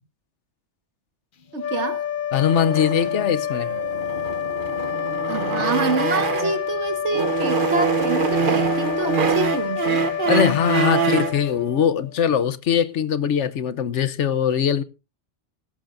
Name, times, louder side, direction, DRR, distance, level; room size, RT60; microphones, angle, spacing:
sound 1, 1.5-12.2, left 9 dB, 50° left, 0.9 m, -28 dB
voice 1, 1.5-2.0 5.3-10.0, right 3 dB, 80° right, 1.8 m, -26 dB
voice 2, 2.3-3.7 10.3-14.8, left 8 dB, 90° left, 1.2 m, -21 dB
sound 2, 2.5-6.7 7.1-11.4, right 6 dB, 50° right, 1.1 m, -25 dB
17.0 x 12.5 x 2.5 m
omnidirectional pair, 1.2 m